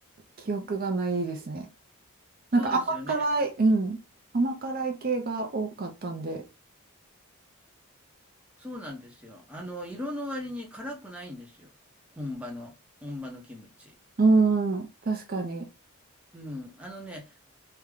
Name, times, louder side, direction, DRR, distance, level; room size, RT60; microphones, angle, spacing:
voice 1, 0.4-1.7 2.5-4.0 4.3-6.4 14.2-15.7, right 3 dB, 45° right, 0.5 m, -26 dB
voice 2, 2.6-3.2 8.6-11.7 12.1-13.9 16.3-17.4, left 1 dB, 5° right, 0.7 m, -39 dB
3.3 x 2.1 x 3.6 m
head